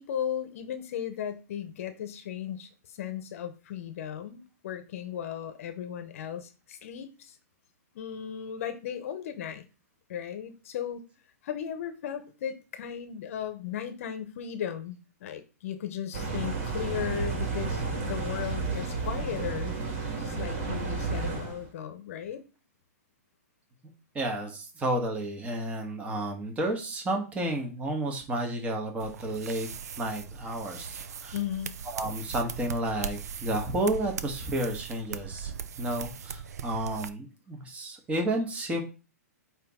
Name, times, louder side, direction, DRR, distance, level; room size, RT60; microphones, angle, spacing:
voice 1, 0.0-7.4 7.9-9.7 10.1-11.0 11.4-19.7 20.2-22.4 31.3-31.7, left 9 dB, 55° left, 10 dB, 0.9 m, -36 dB
sound 1, 16.1-21.7, right 4 dB, 55° right, 2.1 m, -32 dB
voice 2, 24.1-29.7 30.0-31.3 31.9-35.5 35.8-38.8, right 1 dB, 15° right, 2 dB, 1.4 m, -31 dB
sound 2, 29.0-37.1, right 6 dB, 70° right, 0.6 m, -39 dB
8.8 x 3.0 x 3.7 m, 0.33 s
hypercardioid pair, 125°, 9 cm